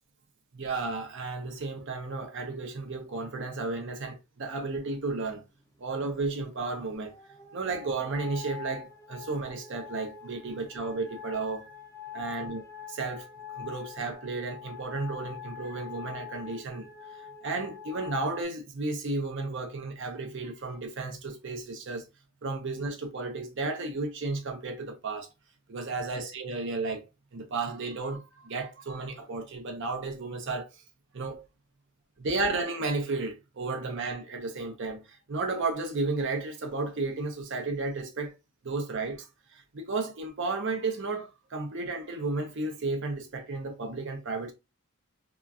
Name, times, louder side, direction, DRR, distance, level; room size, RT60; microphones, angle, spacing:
voice 1, 0.5-5.4 5.8-7.1 7.5-11.7 12.1-12.6 12.9-22.1 22.4-25.3 25.7-27.1 27.3-30.8 31.1-31.4 32.2-38.3 38.6-44.5, right 3 dB, 60° right, 0.7 m, -33 dB
sound 1, 5.9-18.4, left 8 dB, 15° left, 0.5 m, -45 dB
2.9 x 2.4 x 2.3 m
head